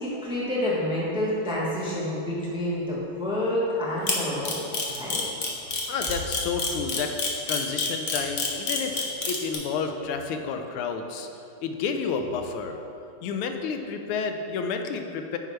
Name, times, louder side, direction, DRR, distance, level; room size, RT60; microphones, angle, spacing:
voice 1, 0.0-4.6 4.9-5.2, left 1 dB, 5° right, -6 dB, 0.7 m, -28 dB
Camera, 4.1-9.5, left 4 dB, 55° left, 0.9 m, -27 dB
voice 2, 5.9-7.1 7.5-11.3 11.6-12.8 13.2-15.4, left 5 dB, 90° left, 6 dB, 1.5 m, -30 dB
9.0 x 5.4 x 3.2 m, 2.7 s
omnidirectional pair, 2.3 m